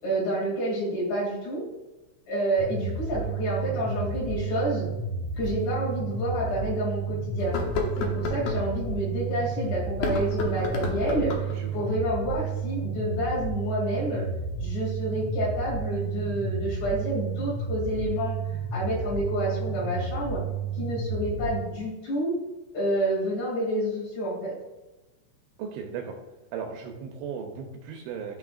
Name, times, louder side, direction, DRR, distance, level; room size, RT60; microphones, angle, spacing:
voice 1, 0.0-1.6 2.3-4.9 5.4-7.6 8.0-11.5 11.7-14.2 14.6-20.4 20.7-22.4 22.7-24.5, right 1 dB, 65° left, -5 dB, 4.5 m, -29 dB
sound 1, 2.6-21.6, right 4 dB, 65° right, 1.8 m, -31 dB
sound 2, 5.4-5.5 6.1-6.2 7.4-8.6 9.9-11.6, left 4 dB, 90° left, 2.0 m, -31 dB
voice 2, 11.5-11.9 25.6-26.1 26.5-28.4, right 6 dB, 85° right, 2 dB, 2.6 m, -36 dB
12.0 x 4.2 x 2.4 m, 1.1 s
omnidirectional pair, 5.5 m